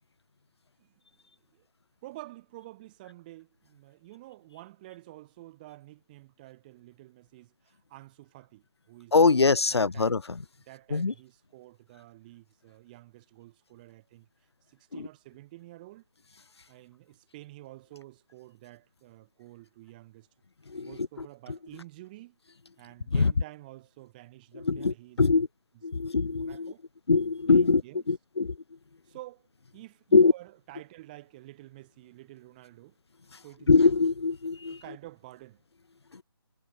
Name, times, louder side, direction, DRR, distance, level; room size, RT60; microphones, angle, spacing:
voice 1, 0.8-1.2 1.5-1.7 2.0-10.2 10.7-14.3 14.7-16.0 16.7-20.3 20.8-22.4 22.8-25.4 25.7-25.8 26.2-26.8 27.4-28.1 29.1-33.0 33.4-33.7 34.7-35.6, right 18 dB, 20° right, 5.4 m, -49 dB
voice 2, 9.1-10.2 10.9-11.1 20.7-20.9 23.2-23.3 24.7-25.5 25.8-26.7 27.1-27.8 28.1-28.5 30.1-30.3 33.7-34.8, left 4 dB, 90° left, 0.7 m, -22 dB
figure-of-eight pair, 160°, 13 cm